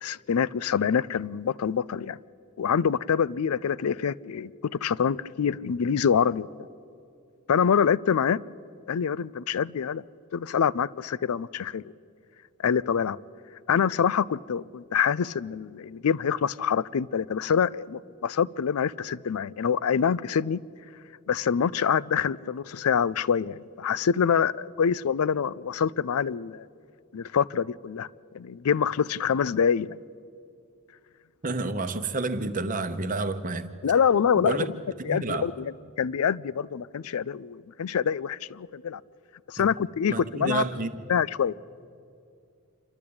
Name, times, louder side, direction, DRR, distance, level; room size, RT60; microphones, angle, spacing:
voice 1, 0.0-2.2 2.6-6.5 7.5-8.4 8.9-10.0 10.3-11.9 12.6-13.2 13.7-20.6 21.3-26.7 27.1-28.1 28.3-30.0 33.8-34.7 35.0-39.0 39.5-40.6 41.1-41.5, left 7 dB, 85° left, 0.4 m, -25 dB
voice 2, 31.4-33.7 34.3-34.7 35.0-35.5 39.6-39.7 40.1-40.9, right 3 dB, 35° right, 0.9 m, -29 dB
27.5 x 12.0 x 8.6 m
head